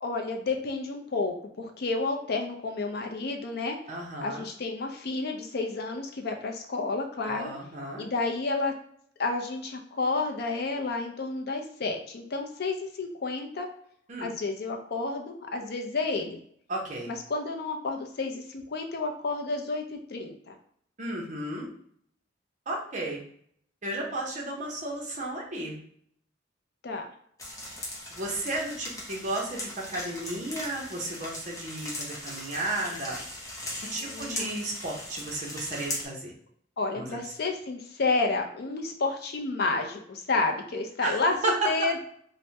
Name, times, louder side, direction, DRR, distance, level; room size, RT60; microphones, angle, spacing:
voice 1, 0.0-3.8 4.2-7.5 8.0-8.7 9.2-13.7 14.2-16.4 17.1-20.6 26.8-27.1 34.0-34.5 36.8-42.0, left 3 dB, 55° left, 4 dB, 0.5 m, -30 dB
voice 2, 3.9-4.5 7.3-8.1 14.1-14.3 16.7-17.1 21.0-21.7 22.7-23.2 23.8-25.8 28.1-33.2 33.8-36.3 36.9-37.2 41.0-41.2 41.4-41.5, right 1 dB, 40° right, -1 dB, 0.7 m, -33 dB
sound 1, 27.4-36.1, left 1 dB, 20° left, 0.7 m, -39 dB
3.2 x 2.1 x 2.7 m, 0.64 s
head